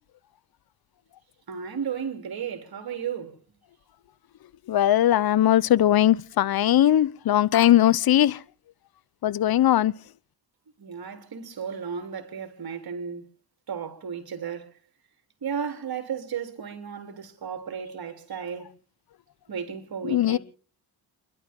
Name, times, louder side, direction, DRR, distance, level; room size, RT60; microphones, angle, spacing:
voice 1, 1.5-3.4 10.8-13.2 13.7-14.7 15.4-18.7 19.5-20.4, right 7 dB, 55° right, 3.7 m, -34 dB
voice 2, 4.7-8.4 9.2-9.9 20.1-20.4, left 12 dB, 55° left, 0.9 m, -20 dB
29.5 x 12.0 x 3.7 m
supercardioid pair, 60°, 43 cm